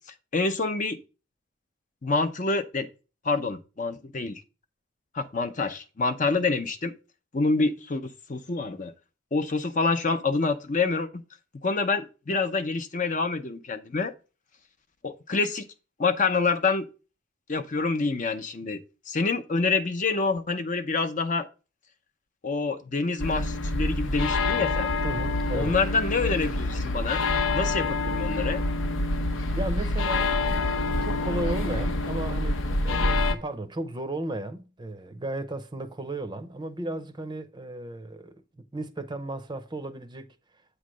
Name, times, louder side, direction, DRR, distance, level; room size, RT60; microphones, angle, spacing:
voice 1, 0.3-1.0 2.0-2.9 3.2-4.4 5.1-6.9 7.3-8.9 9.3-11.1 11.6-14.1 15.0-15.7 16.0-16.9 17.5-21.5 22.4-24.9 25.5-27.2 27.5-28.6, left 4 dB, 40° left, 0.7 m, -27 dB
sound 1, 23.2-33.4, left 2 dB, 80° left, 0.8 m, -26 dB
voice 2, 25.0-25.8 29.5-30.3 31.0-40.3, right 1 dB, 25° right, 0.6 m, -35 dB
8.3 x 3.2 x 6.2 m
head